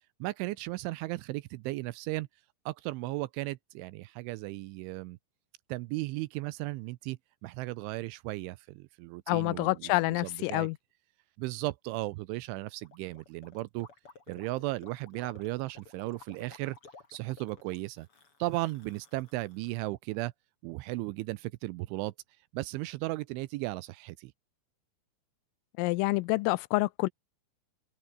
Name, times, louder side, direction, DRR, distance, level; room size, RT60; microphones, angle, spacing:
voice 1, 0.2-2.3 2.7-5.2 5.7-10.7 11.4-13.9 14.3-16.8 17.1-18.1 18.4-20.3 20.6-22.1 22.5-24.3, right 20 dB, 80° right, 2.9 m, -36 dB
voice 2, 9.3-10.8 25.8-27.1, left 22 dB, 85° left, 3.3 m, -27 dB
Gurgling, 12.8-19.7, left 4 dB, 30° left, 5.0 m, -55 dB
omnidirectional pair, 5.9 m